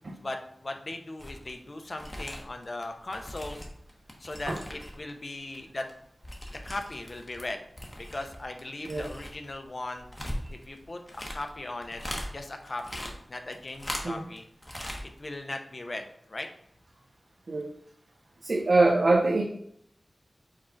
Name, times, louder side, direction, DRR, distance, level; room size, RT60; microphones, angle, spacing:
voice 1, 0.2-3.6 4.2-5.9 6.5-7.6 8.0-10.1 10.5-11.0 11.3-12.0 12.3-14.5 15.2-16.5, left 2 dB, 50° left, 5 dB, 0.5 m, -38 dB
sound 1, 1.2-1.5 1.8-5.1 5.4-7.5 7.7-12.3 12.6-14.4 14.6-15.0 15.3-15.4, equal, 20° left, 0.9 m, -39 dB
voice 2, 18.4-19.4, right 2 dB, 65° right, -1 dB, 0.5 m, -23 dB
4.8 x 2.4 x 4.4 m, 0.70 s
wide cardioid pair, 85°, 0 cm